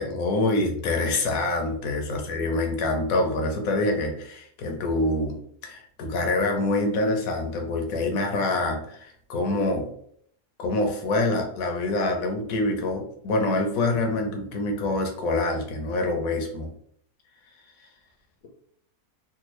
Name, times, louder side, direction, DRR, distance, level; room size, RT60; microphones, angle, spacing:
voice 1, 0.0-5.4 5.6-9.9 10.6-16.7, left 2 dB, 65° left, 4 dB, 1.1 m, -26 dB
3.6 x 2.3 x 3.0 m, 0.66 s
omnidirectional pair, 1.7 m